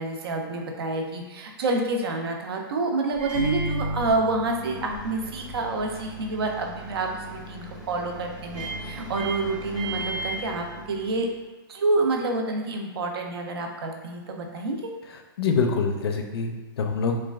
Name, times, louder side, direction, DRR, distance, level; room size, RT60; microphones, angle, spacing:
voice 1, 0.0-11.3 11.7-14.9, right 2 dB, 85° right, 2 dB, 0.5 m, -28 dB
Microwave oven, 3.1-11.3, right 1 dB, 5° right, 0.6 m, -35 dB
voice 2, 15.1-17.2, left 5 dB, 85° left, 4 dB, 0.5 m, -25 dB
3.1 x 2.2 x 2.3 m, 1.2 s
supercardioid pair, 180°, 13 cm